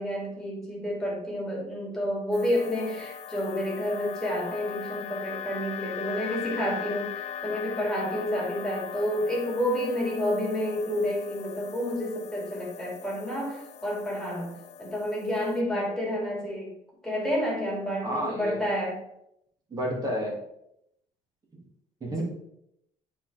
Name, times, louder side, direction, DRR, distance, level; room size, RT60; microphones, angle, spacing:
voice 1, 0.0-16.7 17.0-19.0 22.0-22.2, equal, 5° left, -4 dB, 2.8 m, -30 dB
sound 1, 2.3-15.6, left 9 dB, 50° left, 0.4 m, -40 dB
voice 2, 18.0-18.6 19.7-20.4 22.0-22.2, equal, 25° right, -2 dB, 2.3 m, -30 dB
9.3 x 4.3 x 3.5 m, 0.78 s
cardioid pair, 125°, 14 cm